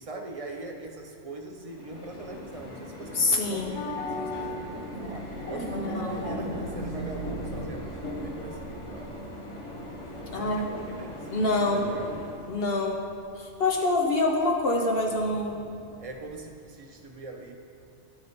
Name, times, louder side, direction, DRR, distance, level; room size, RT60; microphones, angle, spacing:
voice 1, 0.0-9.1 10.3-11.3 11.7-12.4 16.0-17.6, right 2 dB, 40° right, 2 dB, 0.5 m, -42 dB
sound 1, 1.6-12.5, left 1 dB, 85° left, 1.4 m, -37 dB
voice 2, 3.1-3.8 5.7-6.3 10.3-10.6 11.3-11.9 12.5-13.0 13.4-15.6, left 2 dB, 60° left, 0 dB, 0.9 m, -26 dB
sound 2, 3.5-16.3, right 3 dB, 40° left, 1.2 m, -46 dB
12.0 x 4.1 x 5.0 m, 2.5 s
omnidirectional pair, 1.2 m